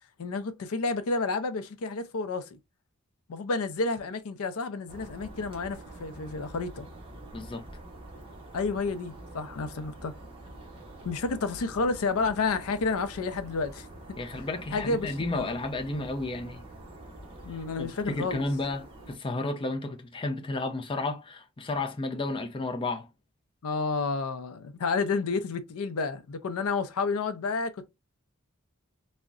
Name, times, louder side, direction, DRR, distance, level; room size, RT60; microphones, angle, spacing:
voice 1, 0.2-2.6 3.3-6.9 8.5-10.1 11.0-13.9 14.7-15.6 17.4-18.4 23.6-27.9, left 4 dB, 80° left, 0.5 m, -30 dB
sound 1, 4.9-19.2, right 1 dB, 25° right, 0.8 m, -46 dB
voice 2, 7.3-7.7 14.2-16.7 17.8-23.1, left 2 dB, 25° left, 0.4 m, -32 dB
3.6 x 2.1 x 2.3 m
head